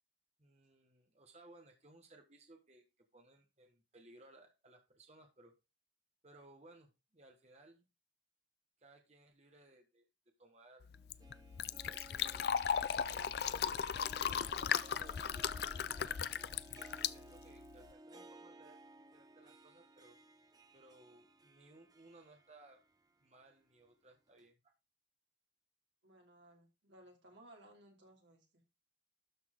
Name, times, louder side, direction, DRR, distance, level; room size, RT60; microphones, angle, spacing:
voice 1, 0.4-5.6 6.2-7.9 8.8-10.1 10.4-10.9 11.8-12.6 13.0-15.3 15.6-16.2 17.0-20.2 20.7-22.8 23.2-24.6, right 2 dB, 35° right, 3 dB, 1.4 m, -62 dB
Fill (with liquid), 10.8-17.9, left 7 dB, 55° left, 0.4 m, -37 dB
Harp, 10.9-23.1 23.4-23.5 24.4-24.5, right 1 dB, 20° right, 0.7 m, -58 dB
voice 2, 26.0-28.6, right 1 dB, 75° right, 1 dB, 2.8 m, -61 dB
12.5 x 4.4 x 3.8 m, 0.26 s
head